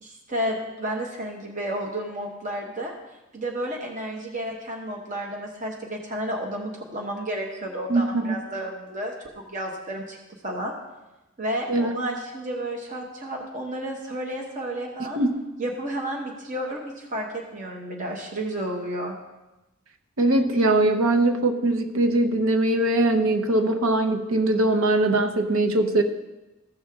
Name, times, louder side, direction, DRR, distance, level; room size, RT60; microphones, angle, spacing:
voice 1, 0.0-3.0 3.3-10.2 10.4-10.7 11.4-15.2 15.6-19.2, right 1 dB, 35° right, 0 dB, 1.1 m, -31 dB
voice 2, 7.9-8.4 11.7-12.0 15.2-15.3 20.2-26.0, right 2 dB, 85° right, 6 dB, 0.8 m, -21 dB
14.5 x 6.3 x 3.6 m, 1.0 s
head